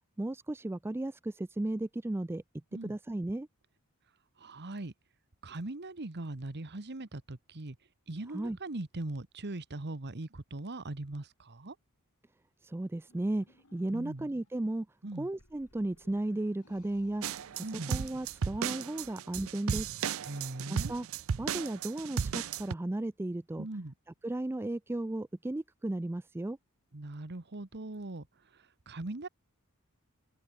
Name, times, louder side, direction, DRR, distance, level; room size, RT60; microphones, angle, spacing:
voice 1, 0.2-2.4 2.8-3.5 8.3-8.6 12.6-13.5 13.7-14.9 15.2-17.2 17.5-20.0 20.9-21.1 21.4-23.7 24.2-26.6, right 1 dB, 10° right, 0.3 m, -35 dB
voice 2, 4.4-4.9 5.4-7.8 8.1-11.8 13.9-14.3 15.0-15.3 17.6-18.0 20.3-20.9 23.6-23.9 26.9-29.3, right 2 dB, 50° right, 1.3 m, -40 dB
sound 1, 13.1-14.8 15.4-20.3, left 1 dB, 80° left, 6.7 m, -63 dB
sound 2, 17.2-22.7, right 7 dB, 65° right, 0.5 m, -35 dB
open air
head